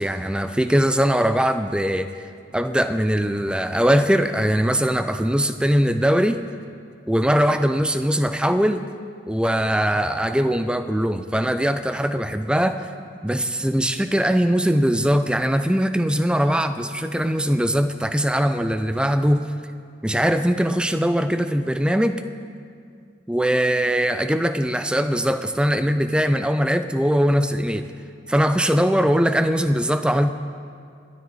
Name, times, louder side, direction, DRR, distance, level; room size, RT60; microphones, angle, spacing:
voice 1, 0.0-2.1 2.5-6.4 7.1-8.9 9.3-12.9 13.2-19.5 20.0-22.2 23.3-27.9 28.3-30.3, equal, 5° right, 9 dB, 0.5 m, -21 dB
26.0 x 9.6 x 4.2 m, 2.3 s
head